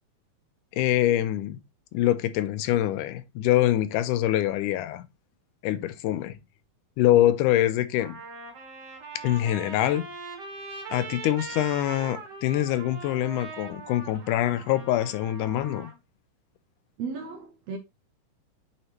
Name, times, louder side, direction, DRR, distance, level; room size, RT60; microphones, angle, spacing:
voice 1, 0.7-1.6 1.9-5.1 5.6-6.4 7.0-8.2 9.2-10.1 10.9-15.9, left 13 dB, 85° left, 2.1 m, -24 dB
Trumpet, 7.3-7.4 8.0-15.9, right 4 dB, 40° right, 1.8 m, -41 dB
voice 2, 17.0-17.8, right 5 dB, 75° right, 1.6 m, -35 dB
7.9 x 4.2 x 3.1 m
omnidirectional pair, 3.7 m